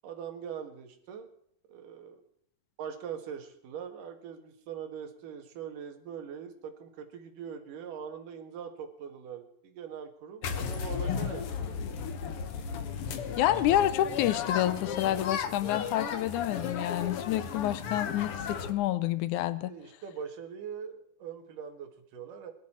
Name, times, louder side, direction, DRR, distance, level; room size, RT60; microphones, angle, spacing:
voice 1, 0.0-1.3 1.7-2.2 2.8-11.8 19.7-22.5, right 7 dB, 70° right, 6 dB, 3.2 m, -42 dB
sound 1, 10.4-18.7, left 7 dB, 60° left, 1.5 m, -34 dB
voice 2, 13.4-19.7, left 13 dB, 75° left, 16 dB, 1.9 m, -28 dB
21.0 x 11.5 x 4.4 m, 0.69 s
omnidirectional pair, 4.0 m